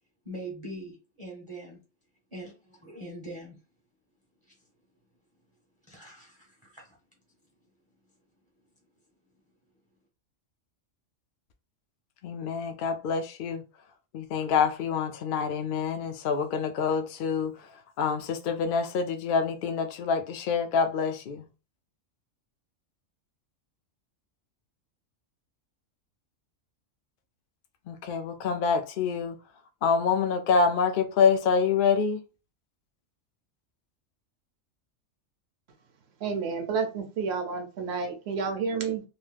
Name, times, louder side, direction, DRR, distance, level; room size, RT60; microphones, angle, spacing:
voice 1, 0.2-1.8 2.3-2.5 2.8-3.6 5.9-6.9, right 1 dB, 25° right, 0.8 m, -42 dB
voice 2, 12.2-13.6 14.1-17.7 18.0-21.5 27.9-29.4 29.8-32.2, left 5 dB, 60° left, 0.6 m, -26 dB
voice 3, 36.2-39.0, right 5 dB, 60° right, 0.9 m, -30 dB
2.9 x 2.1 x 3.2 m
omnidirectional pair, 1.3 m